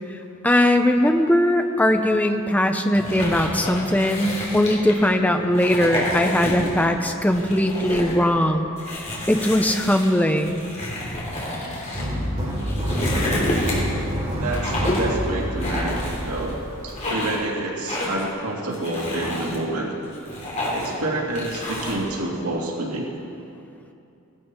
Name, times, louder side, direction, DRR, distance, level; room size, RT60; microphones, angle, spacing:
voice 1, 0.4-8.7 9.0-10.6, left 1 dB, 5° left, 5 dB, 0.6 m, -20 dB
sound 1, 2.9-5.1 5.5-6.9 7.2-8.2 8.8-12.0 12.5-14.0 14.5-15.2 15.6-16.5 16.9-17.4 17.9-18.3 18.7-19.6 20.0-21.0 21.4-22.0, left 1 dB, 30° left, 3.1 m, -29 dB
sound 2, 11.9-17.1, equal, 30° right, 3.9 m, -27 dB
voice 2, 14.4-16.6 16.8-19.9 20.7-23.1, right 2 dB, 90° right, -2 dB, 2.2 m, -28 dB
18.0 x 12.0 x 4.4 m, 2.8 s
head